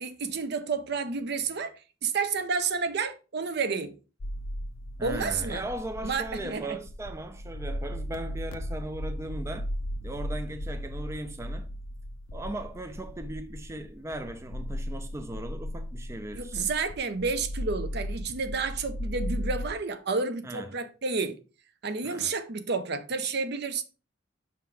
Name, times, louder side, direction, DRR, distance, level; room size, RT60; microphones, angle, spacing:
voice 1, 0.0-1.7 2.0-3.9 5.0-5.6 6.0-6.8 16.3-21.4 21.8-23.8, right 4 dB, 60° right, 0.7 m, -30 dB
sound 1, 4.2-19.8, equal, 90° left, 0.7 m, -36 dB
voice 2, 5.0-9.7 10.0-11.7 12.3-16.7 20.4-20.8 22.0-22.3, right 1 dB, 15° right, 0.4 m, -38 dB
5.9 x 3.6 x 4.6 m
head